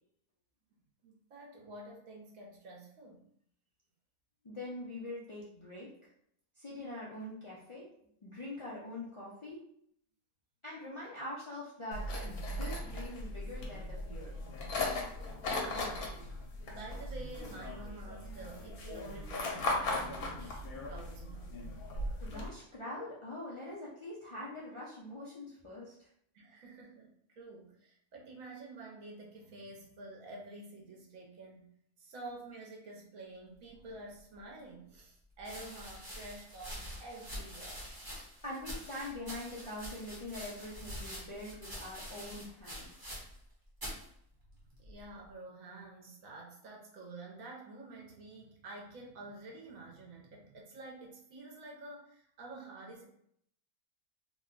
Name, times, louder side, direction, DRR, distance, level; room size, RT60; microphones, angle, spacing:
voice 1, 0.7-3.3 15.4-21.6 26.3-31.7 32.0-37.9 44.7-53.0, right 2 dB, 70° right, -2 dB, 1.1 m, -49 dB
voice 2, 4.4-6.1 6.5-7.9 8.2-9.6 10.6-14.3 22.2-26.1 38.4-42.9, left 1 dB, 50° left, -8 dB, 0.3 m, -44 dB
sound 1, 11.9-22.5, left 2 dB, 80° left, 1.2 m, -38 dB
sound 2, 34.3-34.4 35.4-43.5 43.7-44.1 44.8-45.2, equal, 20° right, 0.8 m, -45 dB
2.9 x 2.2 x 3.7 m, 0.68 s
omnidirectional pair, 1.5 m